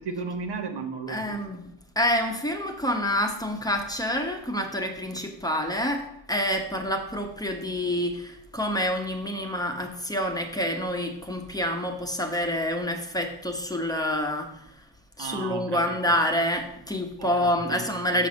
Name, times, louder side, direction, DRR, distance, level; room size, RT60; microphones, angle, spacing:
voice 1, 0.0-1.4 15.2-16.0 17.2-18.3, right 4 dB, 75° right, 6 dB, 1.2 m, -35 dB
voice 2, 1.1-1.7 2.0-14.7 15.2-18.3, equal, 10° left, 3 dB, 1.0 m, -27 dB
6.7 x 6.2 x 6.1 m, 0.78 s
wide cardioid pair, 115°, 42 cm